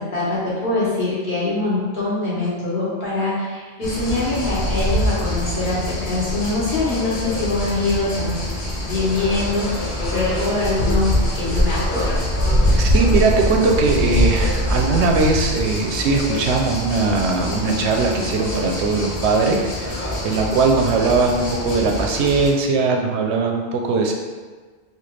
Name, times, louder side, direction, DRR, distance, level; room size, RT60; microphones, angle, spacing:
voice 1, 0.0-8.3 8.8-12.2, left 2 dB, 50° left, -8 dB, 1.4 m, -23 dB
sound 1, 3.8-22.5, left 1 dB, 85° left, 1.2 m, -23 dB
voice 2, 12.7-19.9 20.2-24.1, right 4 dB, 90° right, 2 dB, 0.9 m, -20 dB
4.3 x 2.3 x 3.2 m, 1.4 s
omnidirectional pair, 1.1 m